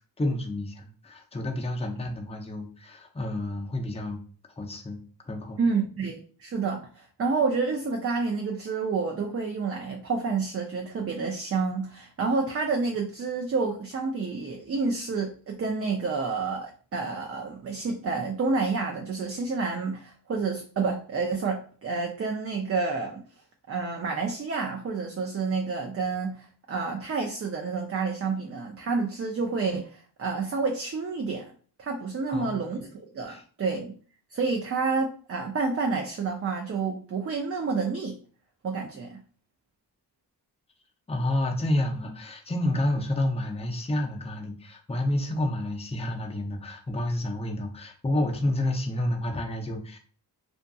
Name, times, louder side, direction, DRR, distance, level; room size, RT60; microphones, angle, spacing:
voice 1, 0.2-4.2 4.6-5.0 5.2-5.6 32.3-32.6 33.3-33.4 41.1-50.0, left 1 dB, 15° left, 2 dB, 0.5 m, -29 dB
voice 2, 5.6-23.2 23.7-31.5 31.8-33.9 34.3-38.2 38.6-39.2, right 4 dB, 35° right, 2 dB, 0.4 m, -29 dB
2.5 x 2.5 x 2.3 m, 0.43 s
cardioid pair, 60°, 42 cm